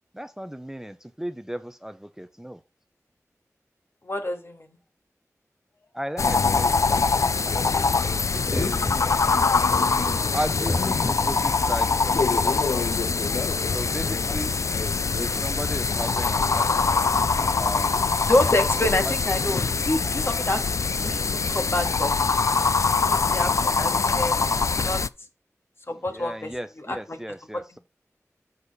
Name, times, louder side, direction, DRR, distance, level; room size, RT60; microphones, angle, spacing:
voice 1, 0.1-2.6 5.9-7.5 8.3-8.9 10.3-12.8 13.6-14.6 15.2-18.2 19.0-19.1 25.9-27.8, equal, 10° right, 0.5 m, -35 dB
voice 2, 4.0-4.7 8.5-10.3 18.3-22.1 23.1-25.0 25.9-26.5 26.9-27.2 27.5-27.8, left 1 dB, 45° left, 1.7 m, -28 dB
sound 1, 6.2-25.1, left 4 dB, 65° left, 0.3 m, -23 dB
6.6 x 4.4 x 5.4 m
wide cardioid pair, 55°, 6 cm